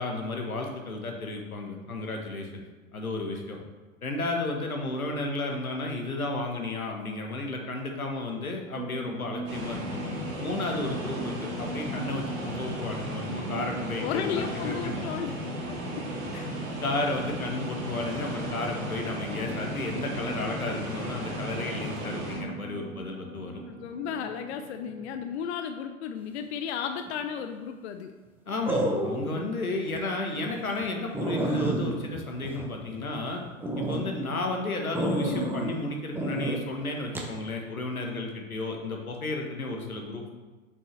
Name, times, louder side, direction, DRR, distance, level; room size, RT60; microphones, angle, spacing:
voice 1, 0.0-2.6 2.9-3.6 4.0-10.1 10.4-14.9 16.3-16.4 16.8-23.6 28.5-33.4 33.8-40.3, left 2 dB, 85° left, 2 dB, 1.3 m, -33 dB
sound 1, 8.8-25.2, right 2 dB, 85° right, 1.3 m, -41 dB
sound 2, 9.5-22.4, equal, 40° right, 1.9 m, -35 dB
voice 2, 14.0-16.3 23.7-28.1, left 7 dB, 50° left, 7 dB, 0.6 m, -34 dB
sound 3, 27.1-27.5 28.7-29.4 29.9-30.0 30.5-30.6 30.8-30.9 31.1-33.2 33.6-34.0 34.9-35.7 36.1-36.6 37.1-37.3, right 1 dB, 5° right, 0.7 m, -29 dB
7.2 x 5.4 x 3.3 m, 1.2 s
figure-of-eight pair, 100°, 42 cm